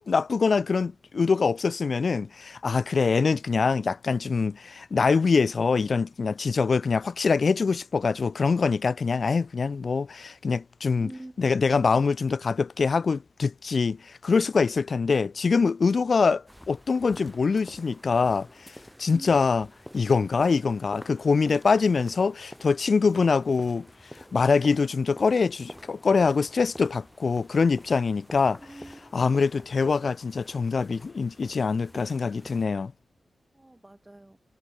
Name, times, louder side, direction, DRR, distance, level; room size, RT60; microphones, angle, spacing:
voice 1, 0.1-11.1 11.4-18.7 19.0-19.7 19.9-23.9 24.3-28.6 29.1-32.9, left 5 dB, 50° left, 0.4 m, -24 dB
voice 2, 11.0-11.4 19.1-19.4 28.6-29.2 33.5-34.4, right 1 dB, 15° right, 4.4 m, -45 dB
sound 1, 16.5-32.7, equal, 5° left, 6.7 m, -48 dB
wide cardioid pair, 150°, 0 cm